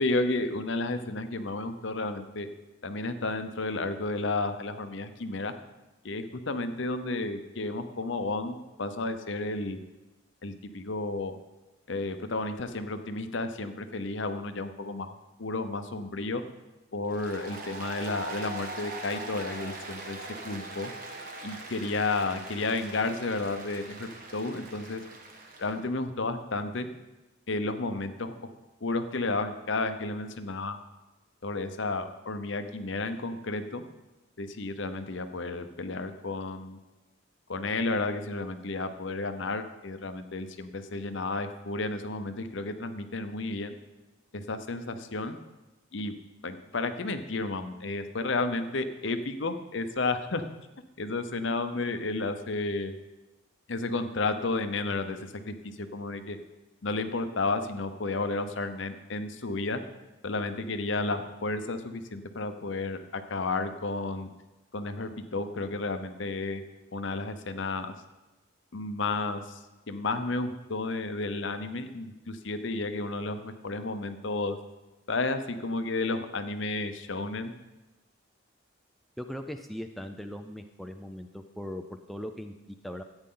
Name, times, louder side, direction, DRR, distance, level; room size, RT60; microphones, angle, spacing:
voice 1, 0.0-2.5 2.8-5.5 6.0-9.8 10.4-11.4 11.9-16.4 16.9-20.9 21.4-25.0 25.6-26.9 27.5-28.5 28.8-30.8 31.4-33.8 34.4-36.8 37.5-43.8 44.3-45.4 45.9-46.1 46.4-50.4 51.0-52.9 53.7-55.2 55.5-56.4 56.8-59.8 60.2-64.3 64.7-66.6 66.9-68.0 68.7-69.6 69.9-74.6 75.1-77.5, left 3 dB, 60° left, 9 dB, 0.8 m, -32 dB
Applause, 17.1-25.8, right 2 dB, 40° right, 1.3 m, -41 dB
voice 2, 79.2-83.0, equal, ahead, 4 dB, 0.4 m, -39 dB
14.0 x 8.9 x 3.8 m, 1.1 s
head